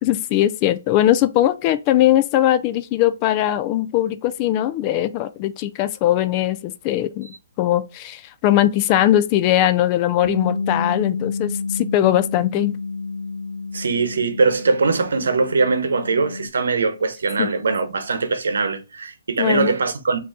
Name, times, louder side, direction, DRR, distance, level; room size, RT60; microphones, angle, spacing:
voice 1, 0.0-7.3 7.6-12.8 17.4-17.5 19.4-19.7, left 13 dB, 30° left, 0.4 m, -20 dB
Bass guitar, 10.2-16.5, left 4 dB, 85° left, 0.8 m, -29 dB
voice 2, 13.7-20.2, right 4 dB, 80° right, 0.9 m, -21 dB
5.2 x 2.7 x 3.6 m
hypercardioid pair, 150°, 0 cm